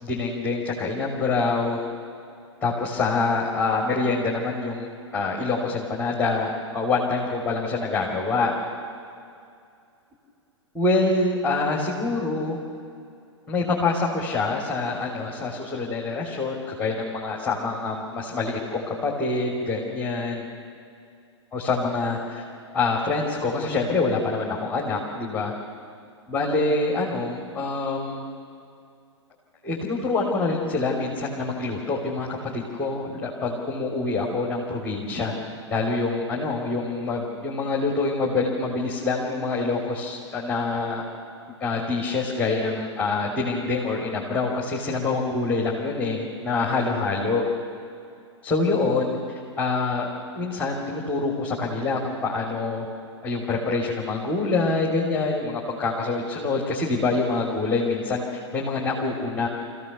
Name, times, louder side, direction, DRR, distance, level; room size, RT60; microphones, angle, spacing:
voice 1, 0.0-1.8 2.6-4.9 5.1-8.5 10.7-12.6 13.5-20.5 21.5-22.4 22.7-25.5 26.3-28.2 29.6-35.3 35.7-41.0 41.6-47.5 48.4-49.2 49.6-50.1 50.3-52.8 53.2-59.5, left 3 dB, 10° left, -2 dB, 3.3 m, -26 dB
26.0 x 16.0 x 6.9 m, 2.5 s
figure-of-eight pair, 110°, 15 cm